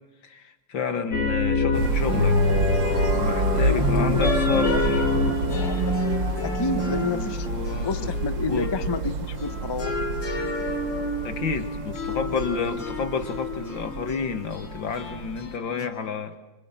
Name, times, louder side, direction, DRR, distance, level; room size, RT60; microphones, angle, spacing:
voice 1, 0.2-2.4 3.1-5.1 7.0-8.1 8.5-8.7 11.2-16.3, left 5 dB, 85° left, 8 dB, 2.8 m, -30 dB
sound 1, 1.1-8.9 9.4-15.9, left 2 dB, 70° left, 4.1 m, -27 dB
sound 2, 1.7-15.6, right 3 dB, 75° right, 2.4 m, -29 dB
voice 2, 3.7-5.9 6.4-7.5 7.8-9.9, left 3 dB, 20° left, 11 dB, 0.7 m, -30 dB
29.5 x 26.0 x 7.6 m, 1.0 s
omnidirectional pair, 2.0 m